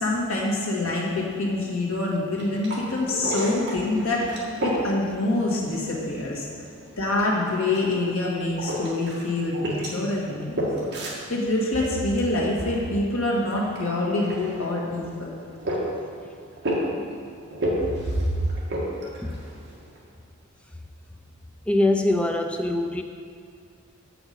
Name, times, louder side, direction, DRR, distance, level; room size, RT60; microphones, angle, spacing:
voice 1, 0.0-4.3 4.6-6.5 7.0-15.3 17.8-18.3, left 2 dB, 75° left, -3 dB, 1.8 m, -26 dB
sound 1, 2.2-20.0, equal, 55° right, 1.8 m, -34 dB
voice 2, 21.7-23.0, left 1 dB, 5° left, 5 dB, 0.3 m, -23 dB
7.9 x 6.0 x 5.6 m, 2.2 s
head